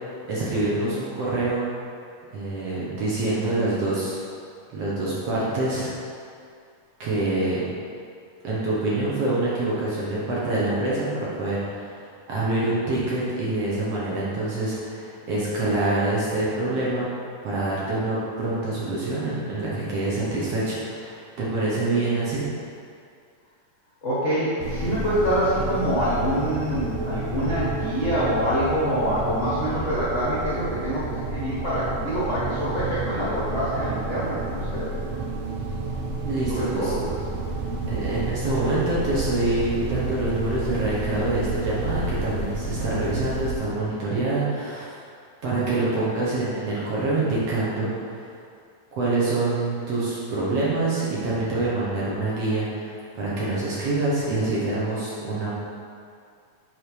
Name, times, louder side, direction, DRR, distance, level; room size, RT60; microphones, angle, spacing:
voice 1, 0.2-1.7 2.3-4.2 4.7-5.9 7.0-7.6 8.4-17.1 17.4-22.4 36.2-37.0 37.9-45.0 45.4-48.3 49.0-55.5, right 2 dB, 60° right, -7 dB, 1.8 m, -26 dB
voice 2, 24.0-31.0 31.3-35.2 36.5-37.1 37.7-38.0, equal, 70° left, -11 dB, 0.6 m, -26 dB
sound 1, 24.6-43.5, right 3 dB, 75° right, 1.6 m, -30 dB
7.7 x 4.0 x 4.9 m, 2.3 s
omnidirectional pair, 3.9 m